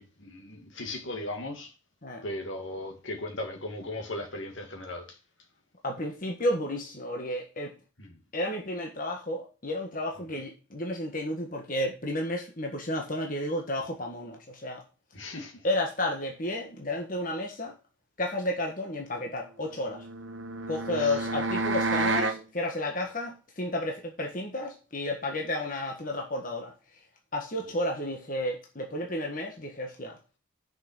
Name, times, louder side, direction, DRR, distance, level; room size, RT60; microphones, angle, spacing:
voice 1, 0.0-1.7 2.2-5.1 8.0-8.1 15.1-15.6 20.9-21.2, left 1 dB, 70° left, 2.2 m, -37 dB
voice 2, 5.8-7.7 8.3-14.8 15.6-17.7 18.2-20.0 20.7-26.7 27.3-30.2, left 1 dB, 40° left, 1.5 m, -32 dB
sound 1, 19.8-22.4, right 3 dB, 65° right, 1.1 m, -29 dB
6.7 x 5.9 x 5.9 m
head